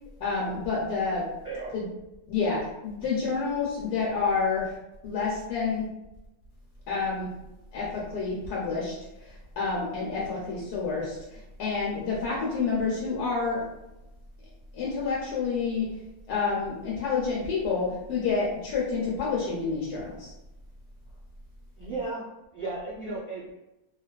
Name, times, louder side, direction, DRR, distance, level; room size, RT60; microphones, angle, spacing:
voice 1, 0.2-1.2 1.7-1.8 2.3-4.7 5.0-5.9 6.9-7.3 7.7-13.6 14.7-15.9 16.3-20.3, left 4 dB, 85° left, -6 dB, 1.2 m, -29 dB
voice 2, 21.8-23.6, right 3 dB, 50° right, -8 dB, 0.6 m, -35 dB
2.5 x 2.3 x 2.2 m, 0.95 s
omnidirectional pair, 1.6 m